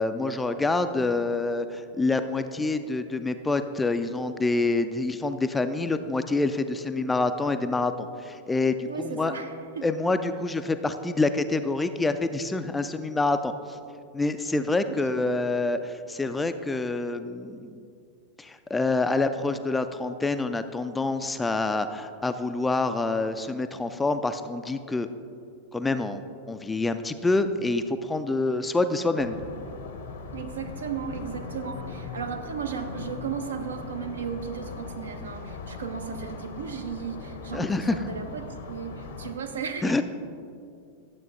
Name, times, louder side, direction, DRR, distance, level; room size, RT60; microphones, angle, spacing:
voice 1, 0.0-9.3 9.8-13.8 14.1-17.8 18.4-25.1 25.7-29.4 37.5-38.0 39.8-40.0, left 3 dB, 10° left, 9 dB, 0.3 m, -27 dB
voice 2, 8.8-9.9 14.9-15.4 28.3-28.4 30.3-40.0, right 6 dB, 70° right, 6 dB, 0.6 m, -35 dB
sound 1, 29.2-39.3, left 4 dB, 60° left, 0.7 m, -39 dB
11.5 x 7.5 x 2.5 m, 2.4 s
figure-of-eight pair, 90°, 0 cm